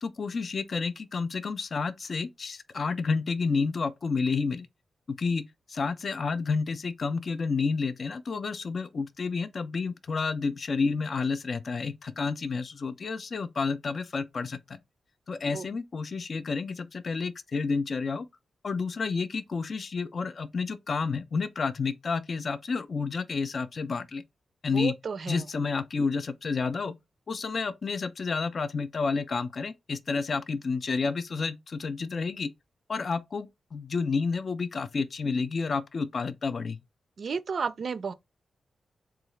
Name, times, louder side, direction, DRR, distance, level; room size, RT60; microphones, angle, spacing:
voice 1, 0.0-4.7 5.2-5.4 5.7-14.8 15.3-18.3 18.6-24.2 24.6-24.9 25.3-26.9 27.3-32.5 32.9-36.8, left 4 dB, 50° left, 0.3 m, -30 dB
voice 2, 24.7-25.4 37.2-38.1, right 5 dB, 60° right, 0.3 m, -32 dB
3.7 x 2.4 x 3.0 m
wide cardioid pair, 105°, 0 cm